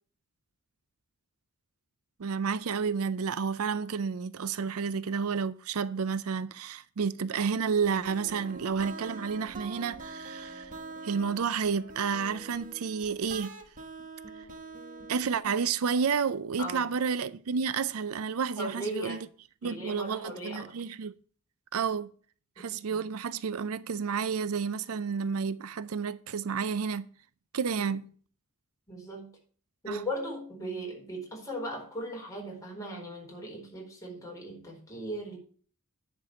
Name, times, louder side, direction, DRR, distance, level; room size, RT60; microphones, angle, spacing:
voice 1, 2.2-10.7 11.0-13.5 15.1-19.3 19.6-21.2 21.7-22.1 22.6-27.1 27.5-28.0 29.9-30.0, right 6 dB, 75° right, 0.5 m, -30 dB
sound 1, 7.8-15.4, right 3 dB, 35° right, 1.6 m, -44 dB
voice 2, 16.6-16.9 18.6-19.2 19.6-20.6 22.6-23.0 27.8-28.0 28.9-29.3 29.8-35.4, equal, 15° left, 4.5 m, -38 dB
10.5 x 5.3 x 6.9 m
head